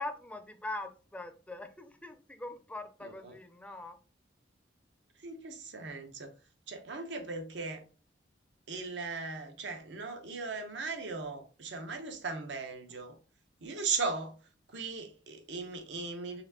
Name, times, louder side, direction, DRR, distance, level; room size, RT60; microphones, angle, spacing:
voice 1, 0.0-4.0, left 2 dB, 5° left, 0.4 m, -42 dB
voice 2, 5.2-6.3 6.7-7.8 8.7-13.2 13.6-14.4 14.7-16.4, right 4 dB, 75° right, 0.9 m, -38 dB
4.2 x 3.5 x 2.7 m
head